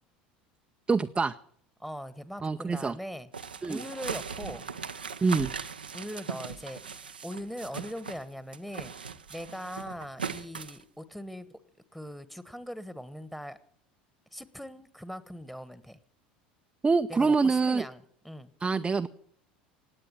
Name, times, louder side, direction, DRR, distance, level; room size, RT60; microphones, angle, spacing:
voice 1, 0.9-1.4 2.4-2.9 3.6-3.8 5.2-5.5 16.8-17.8 18.6-19.1, right 4 dB, 20° right, 7 dB, 0.6 m, -25 dB
voice 2, 1.8-3.3 3.7-4.7 5.9-6.8 7.2-8.9 9.3-11.5 11.9-13.6 14.3-16.0 17.1-18.5, equal, 5° left, 15 dB, 1.4 m, -40 dB
sound 1, 3.3-8.2 8.5-10.8, right 6 dB, 90° right, 0.8 m, -39 dB
18.0 x 8.8 x 8.8 m, 0.64 s
hypercardioid pair, 75°, 5 cm